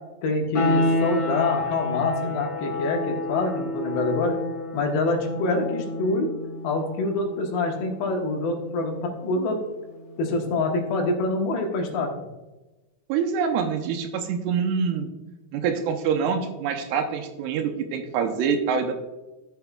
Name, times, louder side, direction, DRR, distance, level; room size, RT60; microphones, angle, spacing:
voice 1, 0.2-4.4 4.7-6.3 6.6-9.6 10.2-12.1, left 2 dB, 90° left, 2 dB, 3.3 m, -26 dB
sound 1, 0.5-11.1, left 2 dB, 65° left, 1.3 m, -30 dB
voice 2, 13.1-15.1 15.5-18.9, right 6 dB, 85° right, 5 dB, 2.8 m, -25 dB
14.0 x 6.0 x 2.3 m, 1.1 s
omnidirectional pair, 4.7 m